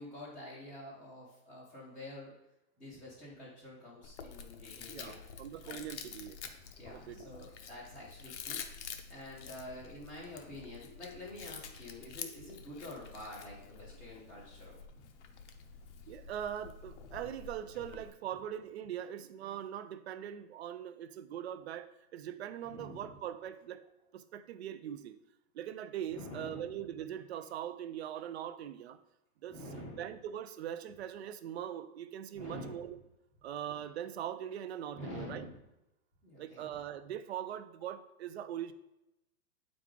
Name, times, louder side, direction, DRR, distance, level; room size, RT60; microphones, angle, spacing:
voice 1, 0.0-2.3 2.8-5.2 5.6-5.9 6.8-8.6 9.1-15.1 22.6-23.0 26.1-26.8 29.5-30.1 32.3-32.8 34.9-35.5 36.2-36.8, left 1 dB, ahead, -13 dB, 0.6 m, -47 dB
Chewing mastication, 4.0-18.1, left 6 dB, 50° left, 0.7 m, -48 dB
voice 2, 4.9-6.4 6.8-7.3 16.1-25.2 25.5-29.0 29.4-33.0 33.4-35.5 36.4-38.7, right 10 dB, 45° right, 12 dB, 0.5 m, -41 dB
8.1 x 4.9 x 3.7 m, 0.90 s
hypercardioid pair, 165°, 45 cm